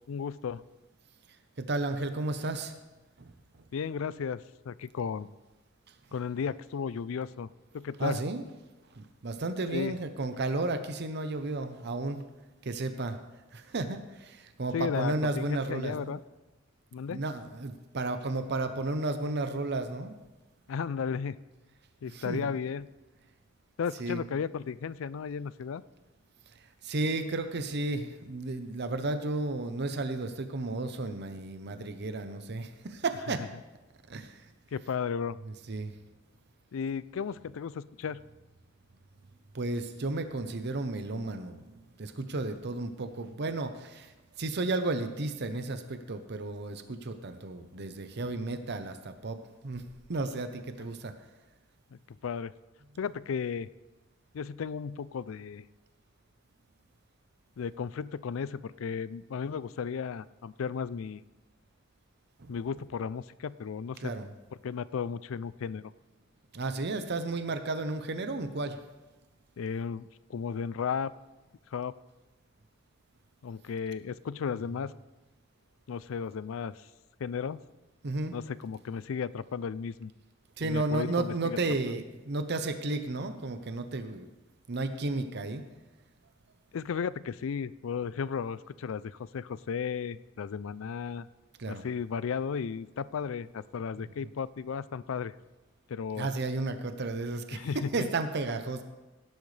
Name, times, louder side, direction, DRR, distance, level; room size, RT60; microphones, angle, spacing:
voice 1, 0.1-0.6 3.7-5.3 6.1-8.2 9.7-10.0 14.7-16.2 16.9-17.2 20.7-21.4 22.0-22.9 23.8-25.8 34.7-35.4 36.7-38.2 51.9-52.5 53.0-53.7 54.3-55.6 57.6-61.2 62.5-64.1 64.6-65.9 69.6-71.1 71.7-71.9 73.4-74.9 75.9-76.9 77.2-77.6 78.3-80.1 80.6-81.6 86.7-91.3 91.7-95.3 95.9-96.3 97.5-98.1, left 6 dB, 80° left, 18 dB, 0.4 m, -34 dB
voice 2, 1.6-2.7 3.2-3.3 8.0-8.4 8.9-12.2 12.6-13.2 13.5-16.1 17.1-20.1 22.1-22.5 24.0-24.2 26.8-33.5 34.1-34.4 35.7-35.9 39.5-41.6 42.0-44.1 44.4-49.4 49.6-49.8 50.1-51.1 62.4-62.5 64.0-64.3 66.5-68.8 78.0-78.4 80.6-84.3 84.7-85.6 91.6-91.8 96.2-98.8, right 2 dB, 55° right, 9 dB, 0.8 m, -33 dB
17.0 x 10.5 x 3.3 m, 1.1 s
head